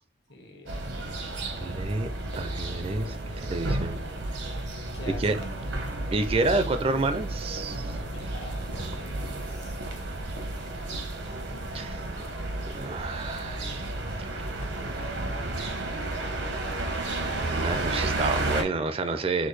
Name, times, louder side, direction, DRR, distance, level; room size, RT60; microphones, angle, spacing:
voice 1, 0.3-1.0 4.9-5.7 8.1-9.8, left 2 dB, 60° left, 1.2 m, -45 dB
sound 1, 0.7-18.6, right 2 dB, 85° right, 0.9 m, -32 dB
voice 2, 1.6-2.1 2.4-4.0 5.2-5.4 6.1-8.0 11.7-12.0 12.7-13.9 14.2-14.9 17.4-19.5, right 3 dB, 30° right, 0.4 m, -29 dB
6.2 x 2.2 x 3.2 m
head